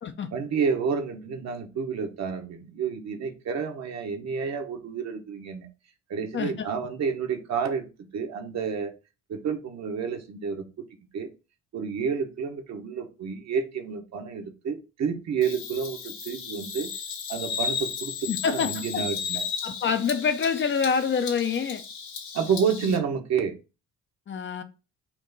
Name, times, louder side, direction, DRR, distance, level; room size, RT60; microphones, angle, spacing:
voice 1, 0.3-5.7 6.1-7.9 8.1-8.9 9.3-10.9 11.1-11.3 11.7-16.9 17.3-19.4 22.3-23.5, right 6 dB, 60° right, 1.0 m, -29 dB
voice 2, 6.3-6.7 18.3-19.0 19.6-21.8 24.3-24.6, left 6 dB, 40° left, 0.6 m, -26 dB
Bird vocalization bird call bird song, 15.4-23.0, left 6 dB, 75° left, 1.4 m, -34 dB
4.5 x 2.5 x 3.9 m
cardioid pair, 90°, 30 cm